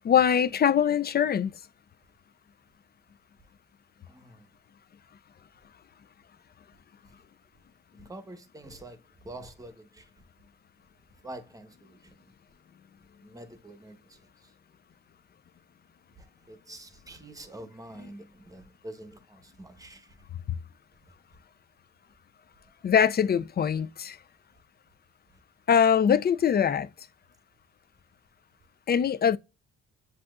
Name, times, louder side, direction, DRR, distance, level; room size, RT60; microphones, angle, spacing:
voice 1, 0.0-1.5 22.8-24.2 25.7-26.9 28.9-29.4, left 8 dB, 35° left, 0.4 m, -22 dB
voice 2, 4.1-4.4 8.1-9.0 9.2-10.1 11.2-12.0 13.2-14.2 16.2-20.1, right 1 dB, 10° right, 1.0 m, -46 dB
7.5 x 2.8 x 2.4 m
cardioid pair, 90°, 30 cm